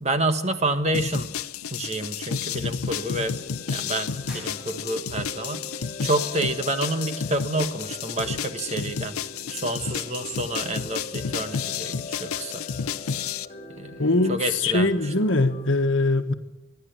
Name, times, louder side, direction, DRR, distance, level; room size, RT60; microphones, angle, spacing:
voice 1, 0.0-1.3 1.7-3.4 3.7-5.6 6.0-9.2 9.5-12.6 13.8-15.0, right 2 dB, 30° right, 8 dB, 1.4 m, -28 dB
sound 1, 0.9-13.5, left 6 dB, 85° left, 0.7 m, -31 dB
sound 2, 2.9-15.7, left 2 dB, 30° left, 3.1 m, -42 dB
sound 3, 4.2-5.3, left 2 dB, 5° right, 7.2 m, -45 dB
voice 2, 14.0-16.3, left 2 dB, 60° left, 7 dB, 1.4 m, -22 dB
27.5 x 11.0 x 9.0 m, 1.0 s
head